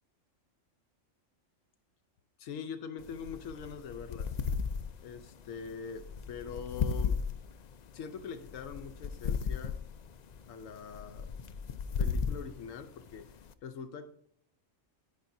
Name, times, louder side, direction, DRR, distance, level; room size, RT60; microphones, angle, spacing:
voice 1, 2.4-4.3 5.0-7.2 7.9-9.8 10.5-11.3 12.0-13.3 13.6-14.1, left 6 dB, 80° left, 7 dB, 1.1 m, -43 dB
sound 1, 3.0-13.5, left 6 dB, 65° left, 0.4 m, -36 dB
10.5 x 9.7 x 2.7 m, 0.67 s
omnidirectional pair, 1.3 m